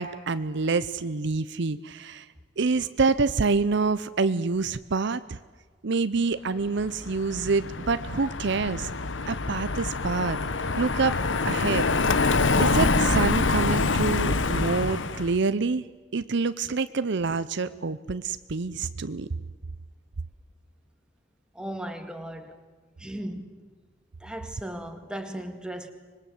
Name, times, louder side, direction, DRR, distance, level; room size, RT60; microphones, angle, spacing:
voice 1, 0.0-2.3 2.6-5.4 5.8-8.9 9.3-11.1 11.4-11.8 12.6-15.9 16.1-19.3, right 4 dB, 65° right, 0.7 m, -27 dB
Car passing by, 6.8-15.3, left 3 dB, 75° left, 1.1 m, -25 dB
voice 2, 21.5-22.6 23.0-23.7 24.2-25.9, right 1 dB, 5° right, 1.9 m, -37 dB
25.5 x 21.0 x 7.9 m
head